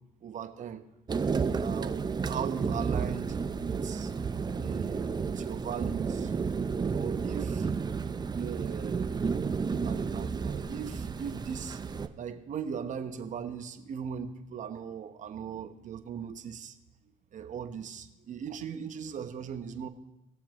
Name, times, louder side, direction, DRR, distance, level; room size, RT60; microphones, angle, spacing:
voice 1, 0.2-0.8 1.6-4.1 4.6-6.3 6.9-7.7 8.3-9.2 9.8-11.8 12.2-16.8 17.3-19.9, right 7 dB, 50° right, 8 dB, 1.0 m, -39 dB
sound 1, 1.1-12.1, right 5 dB, 25° right, 0.6 m, -32 dB
20.5 x 7.1 x 3.0 m, 0.90 s
supercardioid pair, 75°, 16 cm